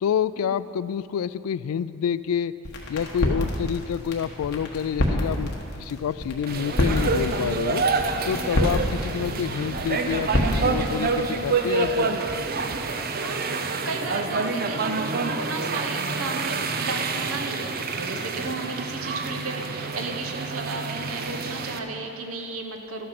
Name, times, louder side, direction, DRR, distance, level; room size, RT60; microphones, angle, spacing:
voice 1, 0.0-2.5 2.9-7.8 8.2-12.2, left 8 dB, 80° left, 17 dB, 0.3 m, -28 dB
sound 1, 2.6-11.5, left 1 dB, 50° left, 1.4 m, -29 dB
sound 2, 3.5-13.3, left 1 dB, 35° left, 1.0 m, -46 dB
sound 3, 6.5-21.8, right 4 dB, 45° right, 0.5 m, -27 dB
voice 2, 13.2-23.1, right 3 dB, 80° right, 4 dB, 1.1 m, -34 dB
12.5 x 8.6 x 5.9 m, 2.9 s
head